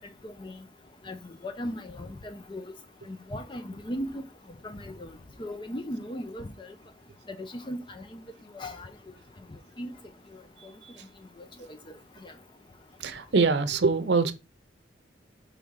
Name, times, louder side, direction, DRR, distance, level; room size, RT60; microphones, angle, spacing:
voice 1, 0.2-0.5 1.1-1.2 1.4-2.6 3.1-4.2 4.6-5.1 5.4-6.5 7.4-8.2 8.5-8.9 9.8-9.9 12.2-12.3, equal, 25° left, 0.5 m, -36 dB
voice 2, 13.0-14.3, right 4 dB, 65° right, 0.7 m, -24 dB
4.9 x 3.4 x 5.5 m
head